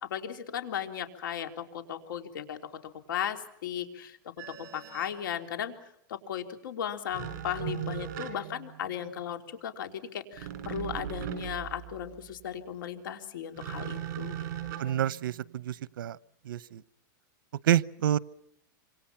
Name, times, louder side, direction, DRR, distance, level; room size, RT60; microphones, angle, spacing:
voice 1, 0.0-2.6 3.1-4.2 4.7-5.8 6.1-14.4, left 9 dB, 75° left, 7 dB, 3.8 m, -36 dB
sound 1, 4.4-5.2 7.1-9.1 10.3-12.1 13.6-15.5, right 11 dB, 50° right, 6.5 m, -39 dB
voice 2, 14.8-16.2 16.5-16.8 17.6-18.2, right 11 dB, 85° right, 19 dB, 0.9 m, -28 dB
26.5 x 26.5 x 5.9 m, 0.75 s
supercardioid pair, 160°, 11 cm